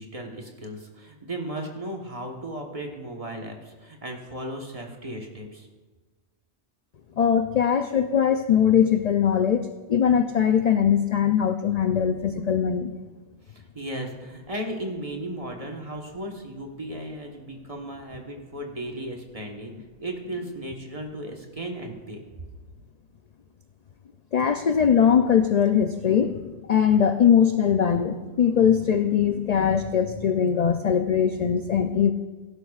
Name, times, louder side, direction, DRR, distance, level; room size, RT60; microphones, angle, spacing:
voice 1, 0.0-5.7 13.5-19.7 20.0-22.2, right 1 dB, 30° right, 1 dB, 1.4 m, -35 dB
voice 2, 7.2-12.9 24.3-32.1, left 8 dB, 60° left, 7 dB, 0.4 m, -21 dB
17.0 x 11.5 x 2.4 m, 1.3 s
omnidirectional pair, 1.2 m